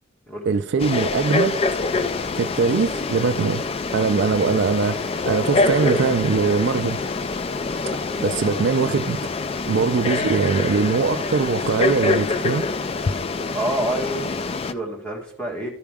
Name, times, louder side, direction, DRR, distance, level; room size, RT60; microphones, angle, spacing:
voice 1, 0.5-1.6 2.4-3.6 3.9-7.0 8.2-9.2 9.7-12.7, right 5 dB, 55° right, 0.3 m, -21 dB
Frog, 0.8-14.7, left 3 dB, 30° left, 0.3 m, -25 dB
voice 2, 5.6-6.0 13.5-15.7, right 2 dB, 5° left, 1.8 m, -28 dB
13.0 x 4.9 x 3.5 m
head